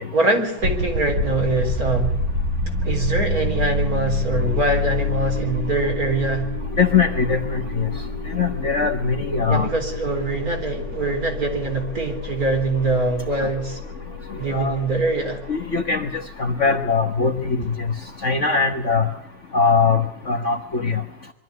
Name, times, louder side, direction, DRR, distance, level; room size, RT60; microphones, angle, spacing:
voice 1, 0.1-2.2 2.8-6.5 9.5-13.8 14.4-15.4, right 2 dB, 45° right, 3 dB, 4.3 m, -23 dB
sound 1, 0.6-17.5, left 2 dB, 75° right, 7.4 m, -28 dB
voice 2, 6.8-7.9 8.3-9.7 14.5-14.8 15.5-17.6 18.2-19.1 19.5-21.0, left 5 dB, 40° left, 6 dB, 1.4 m, -21 dB
23.5 x 13.5 x 9.6 m, 0.85 s
omnidirectional pair, 2.2 m